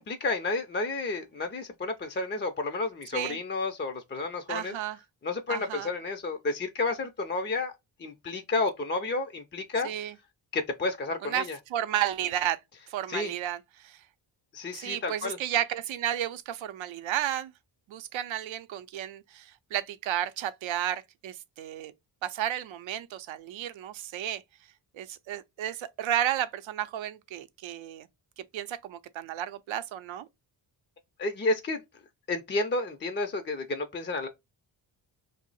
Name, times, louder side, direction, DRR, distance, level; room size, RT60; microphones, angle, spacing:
voice 1, 0.0-4.7 5.2-7.7 8.0-9.9 10.5-11.6 13.1-13.3 14.5-15.4 31.2-31.8 32.3-34.3, left 3 dB, 25° left, 0.4 m, -31 dB
voice 2, 4.5-5.0 5.5-5.9 9.8-10.1 11.2-12.6 12.9-14.0 14.7-17.5 17.9-21.9 22.2-24.4 24.9-28.1 28.5-30.3, right 11 dB, 80° right, 0.6 m, -32 dB
2.7 x 2.0 x 3.9 m
cardioid pair, 85°, 47 cm